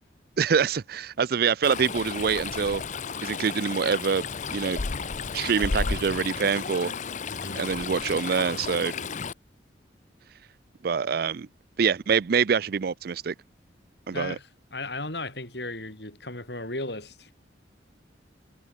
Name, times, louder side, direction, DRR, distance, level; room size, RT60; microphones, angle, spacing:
voice 1, 0.4-2.8 3.2-4.2 4.5-4.8 5.3-6.9 7.5-8.9 10.8-11.5 11.8-13.3 14.1-14.4, right 6 dB, 50° right, 0.4 m, -25 dB
Stream, 1.6-9.3, left 5 dB, 40° left, 0.6 m, -33 dB
sound 1, 5.4-7.2 7.9-9.3, left 2 dB, 80° left, 2.8 m, -45 dB
voice 2, 7.3-7.6 14.1-17.3, left 2 dB, 60° left, 7.9 m, -36 dB
head